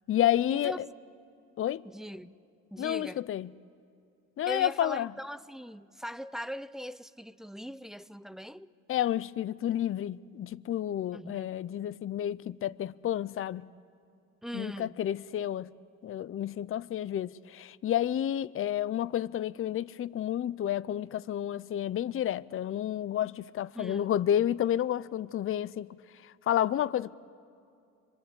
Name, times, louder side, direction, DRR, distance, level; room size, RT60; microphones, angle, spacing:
voice 1, 0.1-0.9 1.6-1.8 2.8-3.5 4.4-5.1 8.9-13.7 14.5-15.7 16.0-25.9 26.5-27.2, left 11 dB, 45° left, 0.5 m, -30 dB
voice 2, 1.8-2.4 2.7-3.3 4.5-8.7 11.1-11.6 14.4-15.0 23.7-24.2, equal, ahead, 0.6 m, -40 dB
26.5 x 23.0 x 8.2 m
cardioid pair, 90°, 30 cm